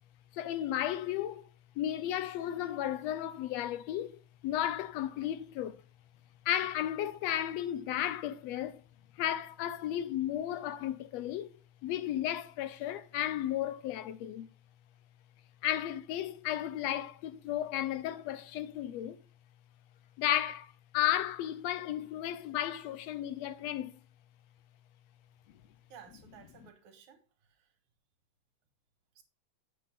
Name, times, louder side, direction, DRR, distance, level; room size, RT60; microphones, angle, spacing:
voice 1, 0.3-1.5 1.8-5.8 6.5-8.8 9.2-11.5 11.8-14.5 15.6-19.2 20.2-23.9, left 12 dB, 75° left, 1.6 m, -34 dB
voice 2, 25.9-27.7 29.2-29.3, right 8 dB, 80° right, 2.7 m, -55 dB
7.7 x 7.5 x 3.4 m
omnidirectional pair, 3.3 m